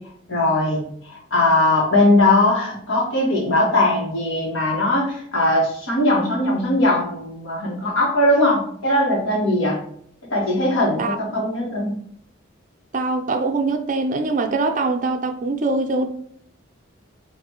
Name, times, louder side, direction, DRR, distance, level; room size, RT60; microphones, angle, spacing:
voice 1, 0.3-9.8 10.3-11.9, left 1 dB, 75° left, 1.5 m, -20 dB
voice 2, 12.9-16.1, right 3 dB, 40° right, 0.4 m, -22 dB
5.1 x 2.6 x 2.9 m
head